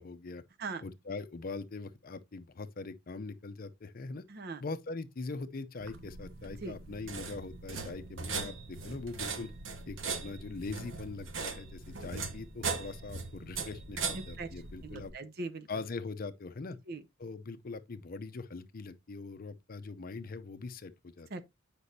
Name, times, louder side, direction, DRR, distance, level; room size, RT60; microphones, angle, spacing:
voice 1, 0.0-0.4 0.8-4.2 4.6-9.5 9.9-15.1 15.7-16.8 17.2-21.3, left 3 dB, 50° left, 0.6 m, -42 dB
voice 2, 4.3-4.6 6.6-6.7 14.1-14.5 14.8-15.7 16.9-17.0 21.3-21.4, right 3 dB, 55° right, 0.7 m, -40 dB
sound 1, 5.8-15.1, right 4 dB, 85° right, 1.0 m, -40 dB
8.3 x 5.2 x 2.7 m
head